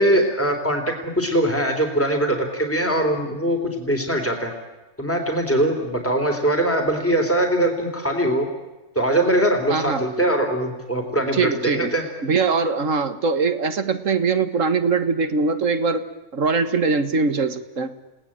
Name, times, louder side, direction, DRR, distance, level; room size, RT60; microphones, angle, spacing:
voice 1, 0.0-4.5 5.0-8.5 9.0-12.0, right 1 dB, 10° left, 4 dB, 3.8 m, -21 dB
voice 2, 9.7-10.0 11.3-11.9 12.2-16.0 16.3-17.9, right 4 dB, 70° right, 11 dB, 1.9 m, -22 dB
30.0 x 19.0 x 8.9 m, 1.1 s
omnidirectional pair, 1.4 m